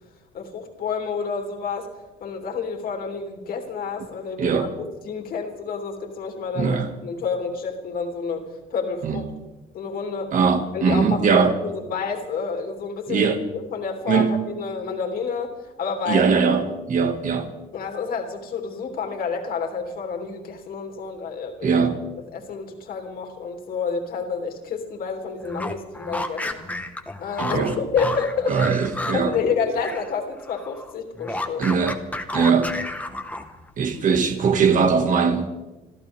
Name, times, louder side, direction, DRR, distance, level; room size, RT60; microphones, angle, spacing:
voice 1, 0.3-1.9 2.2-4.7 5.0-9.2 9.7-10.3 10.7-11.3 11.6-13.2 13.7-16.2 17.7-21.8 22.3-26.6 27.2-28.5 29.1-31.8, left 5 dB, 60° left, 2.9 m, -29 dB
voice 2, 4.4-4.7 6.6-6.9 9.0-9.2 10.3-11.6 13.1-13.4 14.1-14.4 16.1-17.5 21.6-22.0 27.4-27.8 28.5-29.3 31.6-32.0 32.3-32.8 33.8-35.5, right 5 dB, 50° right, 2.0 m, -21 dB
sound 1, 25.4-30.1 30.4-33.7, left 2 dB, 10° left, 1.4 m, -32 dB
26.5 x 14.0 x 3.6 m
cardioid pair, 110°, 17 cm